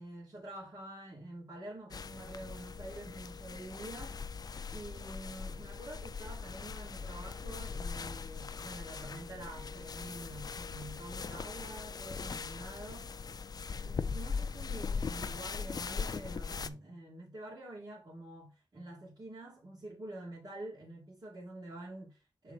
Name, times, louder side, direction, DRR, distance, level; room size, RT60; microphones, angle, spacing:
voice 1, 0.0-4.2 4.7-13.1 13.8-22.5, right 1 dB, 65° right, 2.9 m, -47 dB
sound 1, 1.9-16.7, left 5 dB, 60° left, 0.4 m, -40 dB
6.1 x 4.6 x 4.1 m
wide cardioid pair, 95°, 8 cm